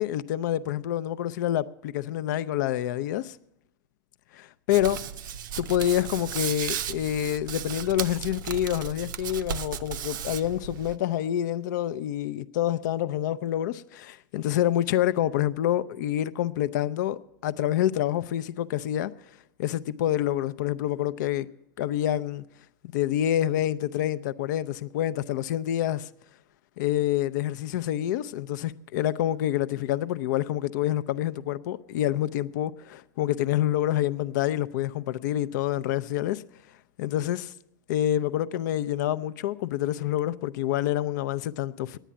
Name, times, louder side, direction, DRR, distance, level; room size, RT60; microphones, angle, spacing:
voice 1, 0.0-3.4 4.3-5.0 5.6-19.1 19.6-21.5 21.8-22.4 22.9-26.1 26.8-36.4 37.0-37.5 37.9-42.0, left 12 dB, 65° left, 0.5 m, -27 dB
Hands, 4.7-10.9, right 8 dB, 75° right, 0.6 m, -35 dB
10.0 x 9.1 x 8.4 m
hypercardioid pair, 105°, 11 cm